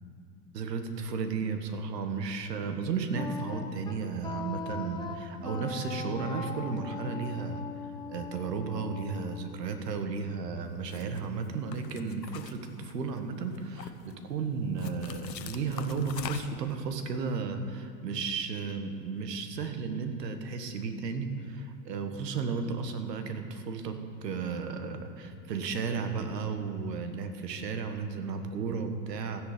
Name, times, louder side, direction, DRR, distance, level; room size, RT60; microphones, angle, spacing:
voice 1, 0.5-7.6 8.1-29.4, right 5 dB, 75° right, 7 dB, 1.6 m, -34 dB
Wind instrument woodwind instrument, 3.1-10.1, left 4 dB, 10° left, 0.7 m, -40 dB
sound 1, 10.8-11.2 11.7-13.2 13.5-14.1 14.8-16.7, left 9 dB, 90° left, 1.0 m, -42 dB
13.5 x 10.0 x 5.2 m, 2.4 s
hypercardioid pair, 115°, 49 cm